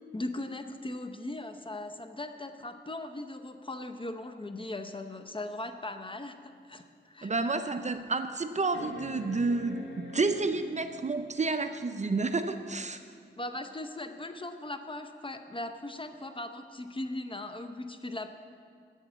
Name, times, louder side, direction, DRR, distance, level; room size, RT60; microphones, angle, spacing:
voice 1, 0.1-7.3 13.4-18.3, left 2 dB, 25° left, 7 dB, 0.8 m, -39 dB
sound 1, 6.6-6.7 7.3-7.4 8.7-11.2 12.9-13.0, left 3 dB, 80° left, 1.2 m, -44 dB
voice 2, 7.2-9.8 10.1-13.0, right 3 dB, 35° right, 9 dB, 0.6 m, -30 dB
8.1 x 7.2 x 8.0 m, 2.3 s
cardioid pair, 60°, 20 cm